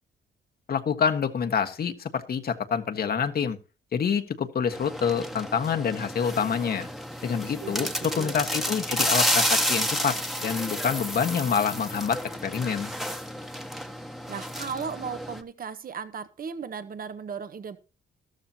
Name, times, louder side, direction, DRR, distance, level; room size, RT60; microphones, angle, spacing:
voice 1, 0.7-3.6 3.9-6.9 7.2-12.9, left 7 dB, 50° left, 1.5 m, -27 dB
sound 1, 4.7-15.4, equal, ahead, 1.4 m, -30 dB
voice 2, 7.4-8.4 14.3-17.8, right 6 dB, 45° right, 1.3 m, -36 dB
13.0 x 13.0 x 2.8 m
cardioid pair, 90°, 20 cm